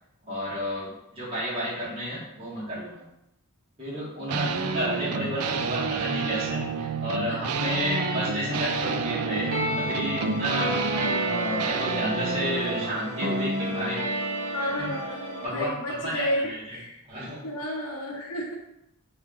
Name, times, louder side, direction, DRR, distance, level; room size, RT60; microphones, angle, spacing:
voice 1, 0.2-3.0 3.8-14.0 14.8-14.9 15.4-16.8 17.1-17.4, equal, 25° right, -10 dB, 1.6 m, -31 dB
sound 1, 4.3-13.0, right 6 dB, 85° right, 0.3 m, -30 dB
sound 2, 7.5-15.5, equal, 65° right, 0.8 m, -31 dB
voice 2, 14.5-17.0 17.4-18.6, equal, 85° left, -1 dB, 1.0 m, -32 dB
5.9 x 3.0 x 2.5 m, 0.83 s
head